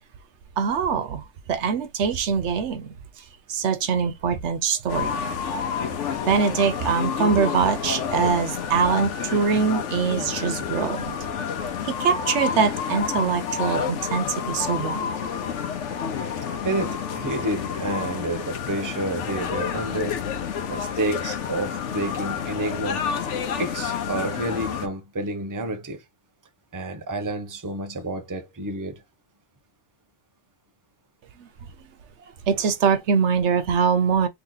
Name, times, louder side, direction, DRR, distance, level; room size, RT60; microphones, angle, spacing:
voice 1, 0.6-2.9 3.5-5.2 6.3-11.4 11.8-15.1 32.5-34.3, right 6 dB, 80° right, 1.0 m, -23 dB
sound 1, 4.9-24.9, left 7 dB, 85° left, 1.0 m, -29 dB
voice 2, 16.6-20.2 20.7-23.1 23.6-26.0 26.7-29.0, right 2 dB, 20° right, 0.6 m, -29 dB
3.0 x 2.9 x 3.8 m
omnidirectional pair, 1.2 m